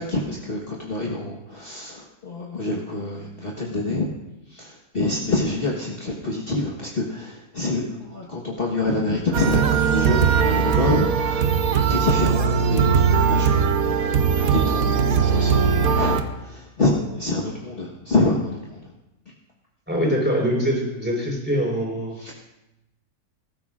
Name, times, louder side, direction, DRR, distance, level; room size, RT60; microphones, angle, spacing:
voice 1, 0.0-4.1 4.5-13.6 13.9-18.9 22.2-22.3, left 2 dB, 40° left, -2 dB, 1.5 m, -26 dB
sound 1, 9.3-16.2, right 6 dB, 70° right, 1.3 m, -20 dB
voice 2, 19.9-22.2, equal, 5° right, -3 dB, 4.2 m, -23 dB
22.0 x 14.0 x 2.5 m, 0.94 s
omnidirectional pair, 1.6 m